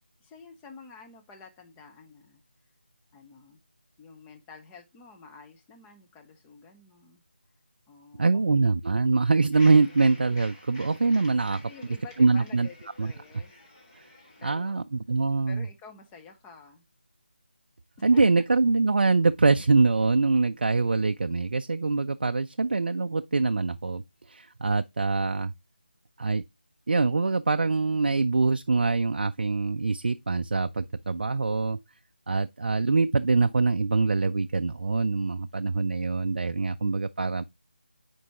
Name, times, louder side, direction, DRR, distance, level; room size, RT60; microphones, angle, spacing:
voice 1, 0.2-2.4 3.1-3.6 4.0-7.2 7.9-8.7 11.3-13.5 14.4-14.9 15.5-16.8 18.0-18.2, left 5 dB, 10° left, 0.6 m, -50 dB
voice 2, 8.2-11.6 12.2-12.7 13.0-13.1 14.0-14.1 14.4-15.7 18.0-24.0 24.3-25.5 26.2-26.4 26.9-31.8 32.3-37.4, right 3 dB, 60° right, 0.3 m, -24 dB
sound 1, 9.5-14.5, left 2 dB, 25° left, 2.0 m, -50 dB
9.2 x 4.5 x 2.9 m
figure-of-eight pair, 160°, 6 cm